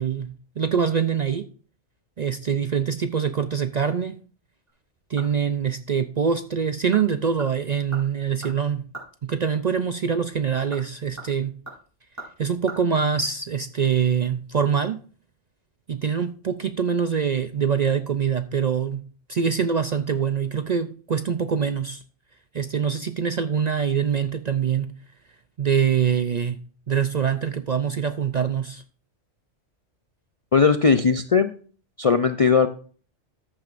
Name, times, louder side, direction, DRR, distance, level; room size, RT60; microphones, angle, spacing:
voice 1, 0.0-1.4 2.2-4.2 5.1-8.9 9.2-11.6 12.4-15.0 15.9-19.0 19.3-22.0 22.5-24.9 25.6-26.6 26.9-28.8, right 7 dB, 50° right, 9 dB, 0.5 m, -24 dB
sound 1, 4.7-5.6 5.9-6.0 6.6-7.1 7.4-9.2 10.4-12.8 13.1-13.2, right 2 dB, 15° right, 4.8 m, -41 dB
voice 2, 30.5-31.5 32.0-32.7, left 5 dB, 50° left, 9 dB, 0.4 m, -18 dB
14.0 x 9.0 x 2.6 m, 0.40 s
omnidirectional pair, 1.2 m